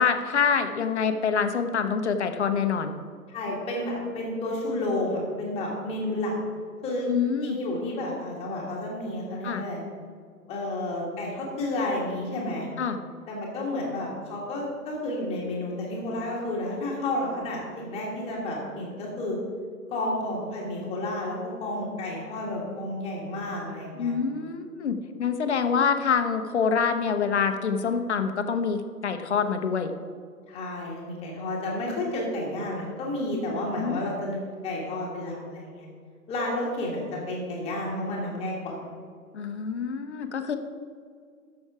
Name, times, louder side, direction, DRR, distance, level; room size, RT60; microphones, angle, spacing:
voice 1, 0.0-2.9 7.1-7.6 9.4-9.6 12.8-13.0 24.0-29.9 33.8-34.0 39.3-40.6, left 6 dB, 45° left, 7 dB, 1.0 m, -26 dB
voice 2, 3.3-6.4 6.8-7.1 7.4-9.8 10.5-12.7 13.3-19.4 19.9-24.1 30.5-35.9 36.3-38.8, left 1 dB, 15° left, -3 dB, 1.7 m, -31 dB
13.5 x 6.3 x 4.8 m, 2.1 s
figure-of-eight pair, 135°, 46 cm